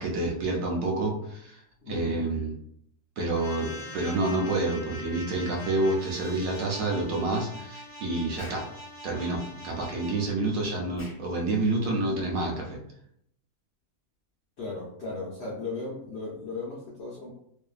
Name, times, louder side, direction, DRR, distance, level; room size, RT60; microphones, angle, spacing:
voice 1, 0.0-1.6 1.9-2.5 3.2-8.6 9.0-12.8, right 2 dB, 65° right, 0 dB, 1.0 m, -28 dB
voice 2, 1.8-2.2 14.6-17.3, left 3 dB, 70° left, -5 dB, 0.6 m, -36 dB
sound 1, 3.3-10.2, left 1 dB, 30° right, 0.9 m, -43 dB
Explosion, 8.4-8.7 10.9-11.3, left 1 dB, 20° left, 0.4 m, -46 dB
2.6 x 2.5 x 2.3 m, 0.72 s
omnidirectional pair, 1.7 m